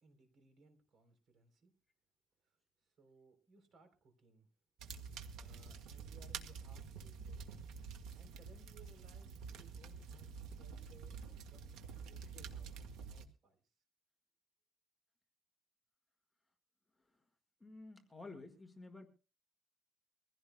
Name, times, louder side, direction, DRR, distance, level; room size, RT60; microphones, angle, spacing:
voice 1, 0.0-1.7 2.4-4.5 5.3-7.4 8.1-12.7 13.1-13.6, right 4 dB, 45° right, 8 dB, 3.5 m, -65 dB
sound 1, 4.8-13.3, right 6 dB, 85° right, 1.7 m, -48 dB
voice 2, 17.6-19.1, left 3 dB, 10° left, 4 dB, 1.6 m, -52 dB
23.5 x 16.0 x 2.2 m, 0.33 s
cardioid pair, 150°, 0 cm